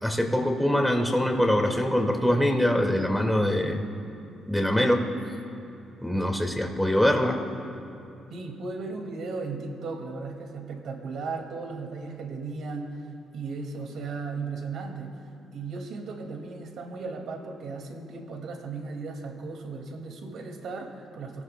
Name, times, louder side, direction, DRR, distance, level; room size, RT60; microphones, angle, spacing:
voice 1, 0.0-3.8 4.5-5.2 6.0-7.5, left 1 dB, ahead, 1 dB, 2.0 m, -23 dB
voice 2, 8.3-13.1 13.3-15.2 15.5-21.4, right 4 dB, 75° right, 2 dB, 2.2 m, -36 dB
29.0 x 18.0 x 2.3 m, 2.7 s
cardioid pair, 90°, 0 cm